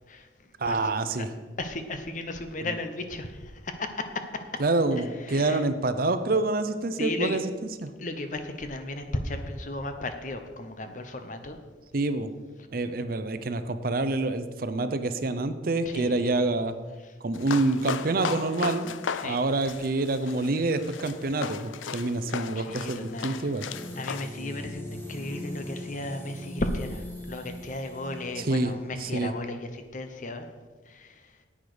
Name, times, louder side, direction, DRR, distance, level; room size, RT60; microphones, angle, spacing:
voice 1, 0.6-1.3 4.6-7.4 7.8-7.9 11.9-12.3 12.7-16.7 17.2-18.9 19.2-23.7 28.4-28.7 29.0-29.3, right 2 dB, 50° right, 11 dB, 0.6 m, -27 dB
voice 2, 1.6-4.4 4.9-5.6 7.0-7.4 8.0-11.6 15.8-16.3 19.1-19.4 22.5-23.5 24.0-30.5 30.9-31.3, left 2 dB, 40° left, 7 dB, 0.9 m, -35 dB
sound 1, 17.3-24.3, left 6 dB, 85° left, 0.5 m, -36 dB
sound 2, 23.7-28.9, left 1 dB, 10° left, 1.4 m, -40 dB
10.0 x 8.6 x 5.0 m, 1.3 s
head